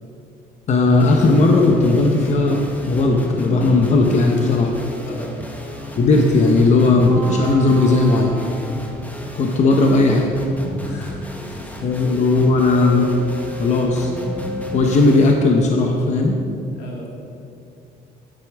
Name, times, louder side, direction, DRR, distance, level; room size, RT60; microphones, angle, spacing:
voice 1, 0.7-4.7 6.0-8.3 9.3-10.3 11.8-13.1 13.6-14.1 14.7-16.4, left 3 dB, 45° left, 1 dB, 0.9 m, -16 dB
sound 1, 1.0-15.3, left 1 dB, 10° left, 1.0 m, -34 dB
sound 2, 6.9-9.1 12.4-15.6, right 1 dB, 70° right, 2.3 m, -34 dB
voice 2, 10.8-12.0 13.0-13.1 16.8-17.1, left 1 dB, 85° left, -2 dB, 2.0 m, -39 dB
9.9 x 8.3 x 3.5 m, 2.5 s
cardioid pair, 110°, 17 cm